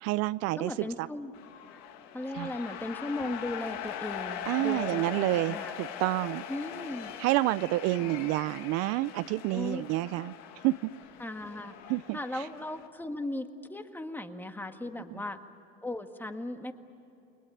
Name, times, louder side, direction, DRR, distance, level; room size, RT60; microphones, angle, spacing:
voice 1, 0.0-1.1 2.3-2.5 4.5-6.4 7.2-10.3 10.6-10.9 11.9-12.5, right 18 dB, 60° right, 16 dB, 0.6 m, -29 dB
voice 2, 0.6-1.3 2.1-5.7 6.5-7.2 8.0-8.1 9.5-9.8 11.2-11.7 12.1-15.4 15.8-16.7, left 1 dB, 5° left, 7 dB, 1.8 m, -37 dB
sound 1, 1.3-12.9, left 9 dB, 65° left, 2.2 m, -41 dB
29.5 x 21.5 x 8.6 m, 3.0 s
supercardioid pair, 105°, 29 cm